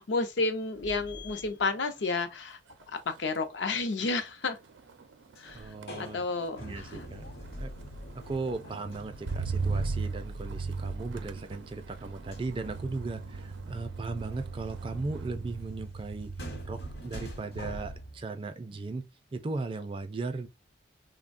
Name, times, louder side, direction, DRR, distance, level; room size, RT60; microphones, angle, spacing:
voice 1, 0.0-2.6 2.9-4.6 5.4-5.6 6.0-6.9, left 3 dB, 75° left, 0.5 m, -31 dB
sound 1, 0.8-2.3 5.3-10.0 12.3-18.2, equal, 55° left, 1.0 m, -46 dB
Motor vehicle (road), 2.0-2.4 2.7-17.1 17.5-18.0, right 4 dB, 85° right, 0.5 m, -38 dB
voice 2, 5.5-6.2 6.6-7.7 8.1-16.3 16.6-19.1 19.3-20.5, right 3 dB, 30° right, 0.3 m, -37 dB
3.3 x 2.1 x 2.4 m
head